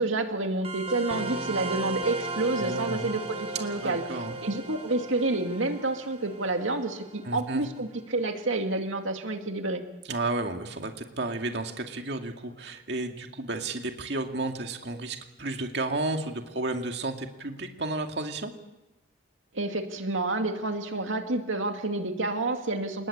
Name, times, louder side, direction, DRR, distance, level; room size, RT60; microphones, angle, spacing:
voice 1, 0.0-4.0 4.4-9.8 19.5-23.1, right 2 dB, 85° right, 5 dB, 2.3 m, -29 dB
sound 1, 0.6-7.7, right 2 dB, 30° right, 3.2 m, -36 dB
voice 2, 2.6-3.0 3.8-4.4 7.2-7.6 10.1-18.5, right 2 dB, 60° right, 4 dB, 2.3 m, -32 dB
28.5 x 20.5 x 8.7 m, 1.0 s
head